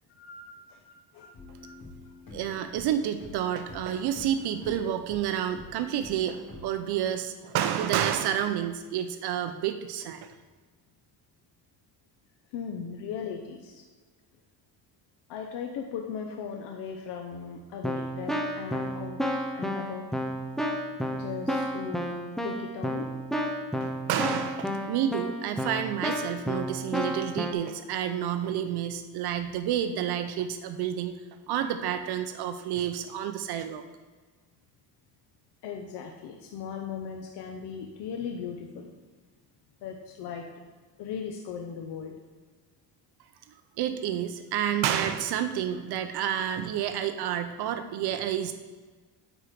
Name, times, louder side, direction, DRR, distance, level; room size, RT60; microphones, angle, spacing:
voice 1, 0.1-1.8 12.5-13.8 15.3-19.2 19.5-20.2 21.1-22.1 22.4-23.1 35.6-38.9 39.8-40.5 41.0-42.1, left 7 dB, 70° left, 2 dB, 0.8 m, -38 dB
sound 1, 1.3-6.9, left 2 dB, 55° left, 2.0 m, -47 dB
voice 2, 2.3-10.3 23.8-31.2 31.5-33.8 43.8-48.5, right 10 dB, 65° right, 8 dB, 0.6 m, -29 dB
Keyboard (musical), 17.3-17.5 17.8-27.5, equal, ahead, 0.4 m, -32 dB
8.7 x 4.5 x 5.0 m, 1.4 s
cardioid pair, 150°, 42 cm